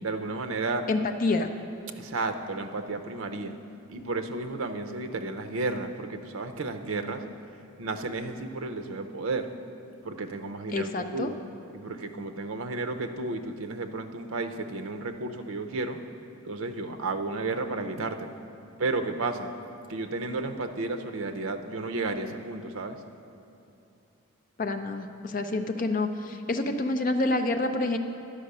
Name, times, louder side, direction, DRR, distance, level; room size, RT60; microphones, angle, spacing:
voice 1, 0.0-0.9 2.0-3.5 3.9-7.2 7.8-9.5 10.0-11.4 11.7-16.0 16.4-18.4 18.8-19.5 19.9-23.0, right 3 dB, 75° right, 7 dB, 0.6 m, -32 dB
voice 2, 0.9-1.5 10.7-11.3 24.6-28.0, left 2 dB, 40° left, 6 dB, 0.5 m, -28 dB
11.5 x 5.2 x 6.6 m, 2.7 s
head